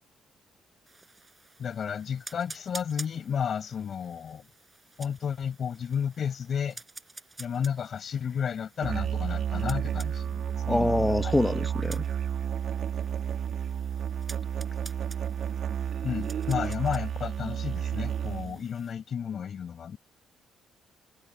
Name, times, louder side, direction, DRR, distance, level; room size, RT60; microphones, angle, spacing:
sound 1, 0.9-18.9, right 3 dB, 20° right, 6.4 m, -50 dB
voice 1, 1.6-4.4 5.0-6.8 7.4-11.3 16.0-20.0, left 7 dB, 55° left, 7.7 m, -32 dB
Musical instrument, 8.8-18.6, right 8 dB, 65° right, 2.4 m, -31 dB
voice 2, 10.7-12.0, left 1 dB, 10° left, 0.9 m, -25 dB
cardioid pair, 90°, 0 cm